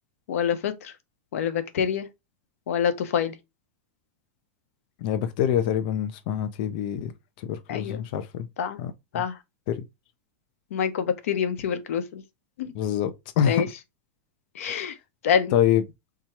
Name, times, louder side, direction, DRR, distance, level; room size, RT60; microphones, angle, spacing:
voice 1, 0.3-0.9 1.3-2.1 2.7-3.3 7.7-8.0 8.6-8.8 9.1-9.3 10.7-12.2 12.6-12.7 13.4-13.7 14.5-14.9 15.2-15.6, left 8 dB, 85° left, 0.8 m, -26 dB
voice 2, 5.0-7.1 7.4-8.5 8.8-9.2 9.7-9.8 12.7-13.1 13.4-13.6 14.7-14.9 15.5-15.8, left 10 dB, 40° left, 0.4 m, -25 dB
3.6 x 2.9 x 4.4 m
supercardioid pair, 180°, 7 cm